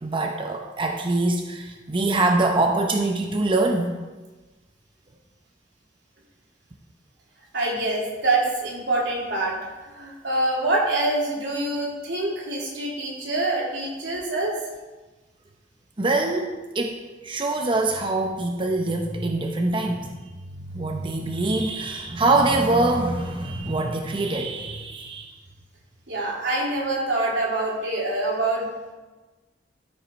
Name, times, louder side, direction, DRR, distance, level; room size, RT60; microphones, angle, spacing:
voice 1, 0.0-3.9 16.0-25.3, right 2 dB, 30° right, 2 dB, 0.7 m, -24 dB
voice 2, 7.5-9.6 9.8-14.6 26.1-28.7, right 2 dB, 80° right, -4 dB, 2.8 m, -25 dB
13.5 x 5.6 x 4.5 m, 1.2 s
head